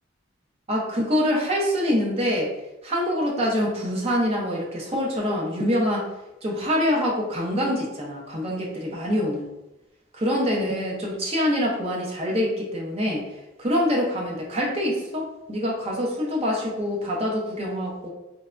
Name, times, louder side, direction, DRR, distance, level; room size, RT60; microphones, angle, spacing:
voice 1, 0.7-2.5 2.8-6.1 6.4-9.5 10.1-13.2 13.6-18.1, equal, 30° right, -2 dB, 0.6 m, -25 dB
3.2 x 2.1 x 2.5 m, 0.95 s
head